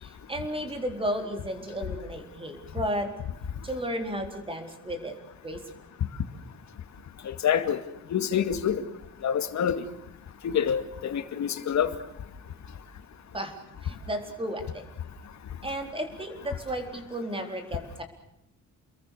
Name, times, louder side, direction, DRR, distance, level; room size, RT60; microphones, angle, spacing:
voice 1, 0.0-3.1 3.6-5.1 5.4-5.6 13.3-14.8 15.6-18.0, equal, 15° right, 5 dB, 4.3 m, -33 dB
voice 2, 7.2-7.8 8.1-8.8 9.2-9.8 10.4-11.9, left 8 dB, 65° left, 9 dB, 2.3 m, -26 dB
29.5 x 22.0 x 6.8 m, 0.83 s
wide cardioid pair, 155°, 31 cm